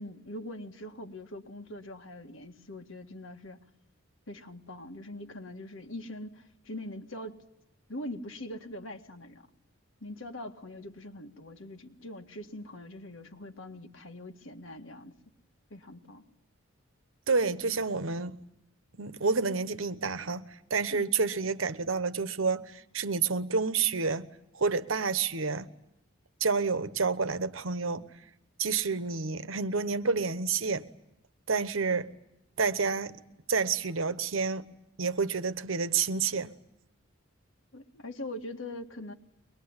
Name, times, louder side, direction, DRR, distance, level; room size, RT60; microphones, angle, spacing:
voice 1, 0.0-3.6 4.3-7.4 7.9-9.4 10.0-15.1 15.7-16.2 20.9-21.1 37.7-39.1, left 1 dB, 70° left, 2.0 m, -42 dB
voice 2, 17.3-18.4 18.9-20.4 20.7-24.3 24.5-25.7 26.4-28.0 28.6-30.9 31.5-32.1 32.6-33.2 33.5-34.7 35.0-36.5, right 4 dB, 75° right, 1.1 m, -29 dB
23.5 x 21.5 x 9.7 m
head